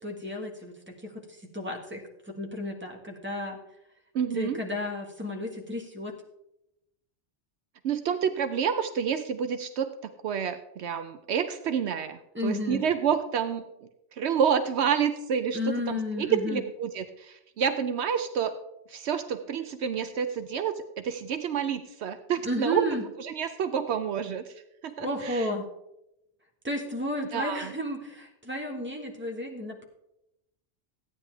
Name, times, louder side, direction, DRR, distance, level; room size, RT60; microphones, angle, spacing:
voice 1, 0.0-3.6 4.3-6.1 12.3-12.8 15.5-16.6 22.4-23.0 25.0-25.7 26.6-29.8, left 1 dB, 10° right, 1 dB, 1.4 m, -33 dB
voice 2, 4.1-4.6 7.8-13.6 14.1-18.6 18.9-22.9 23.2-24.5 24.8-25.5 27.3-27.7, right 7 dB, 70° right, 9 dB, 0.9 m, -29 dB
14.5 x 9.7 x 3.4 m, 0.85 s
omnidirectional pair, 1.2 m